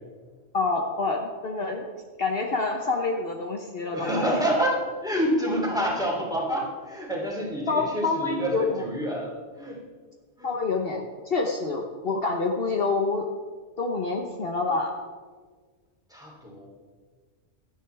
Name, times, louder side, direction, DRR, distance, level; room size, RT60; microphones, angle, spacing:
voice 1, 0.5-1.8 2.2-4.4 7.7-8.8 10.4-13.3 13.8-14.9, left 3 dB, 55° left, 2 dB, 1.2 m, -27 dB
voice 2, 3.9-9.8 10.4-10.5 16.1-16.7, equal, 5° right, -2 dB, 3.0 m, -28 dB
16.5 x 12.5 x 3.4 m, 1.5 s
omnidirectional pair, 1.2 m